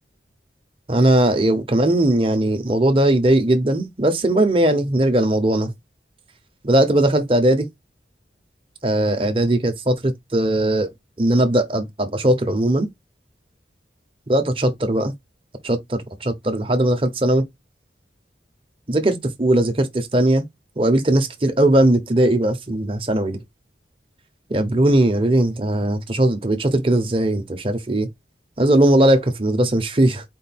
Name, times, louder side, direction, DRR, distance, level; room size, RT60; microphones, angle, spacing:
voice 1, 0.9-5.7 6.6-7.7 8.8-10.9 11.2-12.9 14.3-15.1 15.6-17.5 18.9-20.4 20.8-23.4 24.5-28.1 28.6-30.2, right 1 dB, 30° right, 1.0 m, -19 dB
4.6 x 2.6 x 4.2 m
head